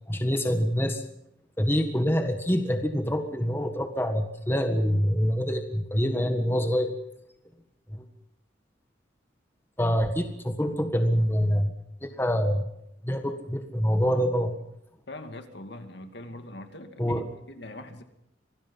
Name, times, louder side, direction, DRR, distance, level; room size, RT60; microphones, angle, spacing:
voice 1, 0.1-1.0 1.6-6.9 7.9-8.0 9.8-11.7 12.0-12.7 13.0-14.6 17.0-17.3, equal, 10° left, 6 dB, 1.6 m, -25 dB
voice 2, 15.1-18.0, left 1 dB, 55° left, 7 dB, 2.4 m, -42 dB
26.0 x 19.0 x 5.6 m, 0.81 s
head